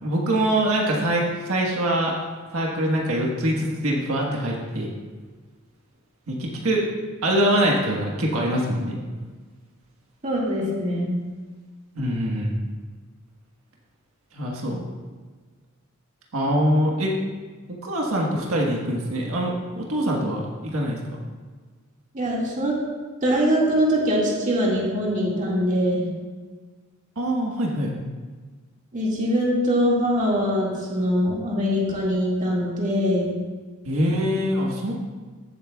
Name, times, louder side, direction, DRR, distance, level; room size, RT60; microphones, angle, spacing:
voice 1, 0.0-2.2 2.5-4.9 6.3-6.8 7.2-9.0 11.9-12.5 14.3-14.8 16.3-17.1 17.7-21.0 27.2-27.9 33.8-34.9, right 1 dB, 90° right, -2 dB, 1.5 m, -24 dB
voice 2, 10.2-11.2 22.1-22.7 23.2-26.1 28.9-33.3, equal, 35° right, -4 dB, 2.1 m, -22 dB
15.0 x 8.1 x 2.4 m, 1.4 s
head